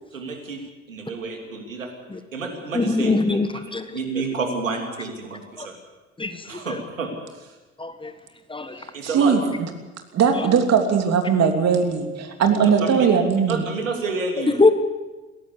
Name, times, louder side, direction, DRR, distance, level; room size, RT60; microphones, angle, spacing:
voice 1, 0.1-0.6 0.9-1.9 2.3-3.4 3.9-5.7 6.5-7.5 8.9-9.3 12.6-13.0 13.5-14.6, right 4 dB, 85° right, 3 dB, 2.9 m, -30 dB
voice 2, 2.7-3.9 5.6-5.7 6.2-6.8 7.8-8.1 8.5-8.8 12.8-12.9 14.6-14.7, left 3 dB, 15° left, 10 dB, 1.4 m, -22 dB
voice 3, 8.8-9.4 10.1-13.7, right 6 dB, 40° right, 4 dB, 3.1 m, -19 dB
22.0 x 17.0 x 6.9 m, 1.2 s
figure-of-eight pair, 65°, 38 cm